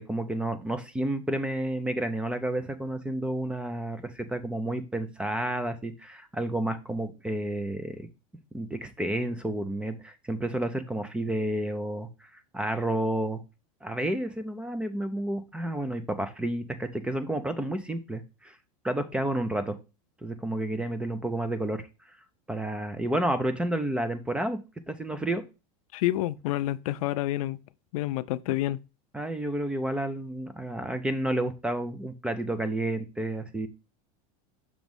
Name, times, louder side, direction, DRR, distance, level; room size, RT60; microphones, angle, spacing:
voice 1, 0.0-8.1 8.5-13.4 13.8-18.6 18.8-19.8 20.2-21.8 22.5-24.6 24.9-25.4 29.1-33.7, right 1 dB, 5° right, 0.4 m, -30 dB
voice 2, 25.9-27.6 27.9-28.8, left 15 dB, 75° left, 0.4 m, -28 dB
6.2 x 3.0 x 5.2 m
supercardioid pair, 155°, 18 cm